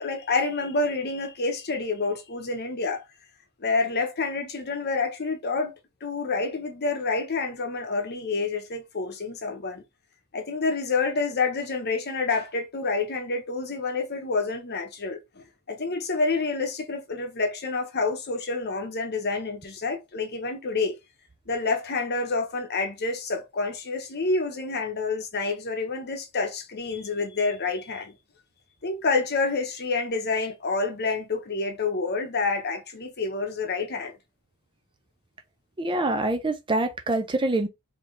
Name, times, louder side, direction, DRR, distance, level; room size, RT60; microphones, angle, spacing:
voice 1, 0.0-3.0 3.6-5.7 6.0-9.8 10.3-21.0 21.5-28.1 28.8-34.2, left 3 dB, 50° left, 0.9 m, -28 dB
voice 2, 35.8-37.7, right 2 dB, 20° right, 0.5 m, -25 dB
3.9 x 2.8 x 3.2 m
head